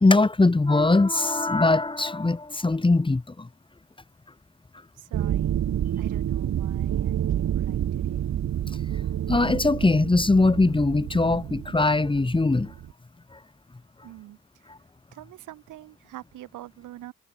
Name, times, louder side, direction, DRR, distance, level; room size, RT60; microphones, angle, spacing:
voice 1, 0.0-3.5 9.3-12.7, left 3 dB, 15° left, 2.0 m, -21 dB
voice 2, 4.9-5.5 6.0-8.2 14.0-14.7 15.1-17.1, right 15 dB, 85° right, 6.3 m, -45 dB
sound 1, 5.1-12.9, right 10 dB, 65° right, 2.5 m, -29 dB
cardioid pair, 90°, 30 cm